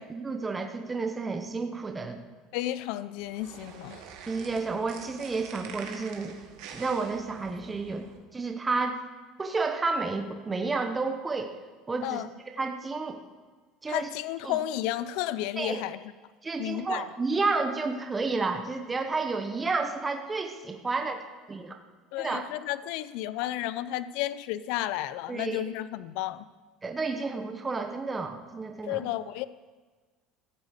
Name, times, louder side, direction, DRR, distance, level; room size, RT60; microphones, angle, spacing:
voice 1, 0.1-2.2 4.3-6.3 6.7-8.1 8.3-9.0 9.4-11.5 11.9-12.2 12.6-13.2 13.8-14.1 14.4-14.6 15.6-15.8 16.4-21.2 21.5-21.8 22.2-22.5 25.3-25.6 26.8-29.1, right 3 dB, 15° right, 5 dB, 1.0 m, -31 dB
voice 2, 2.5-4.0 12.0-12.3 13.9-16.0 16.6-17.1 22.1-26.4 28.9-29.4, left 14 dB, 70° left, 15 dB, 0.6 m, -32 dB
sound 1, 3.2-8.2, right 7 dB, 65° right, 2.1 m, -46 dB
15.0 x 8.1 x 8.2 m, 1.4 s
cardioid pair, 150°, 0 cm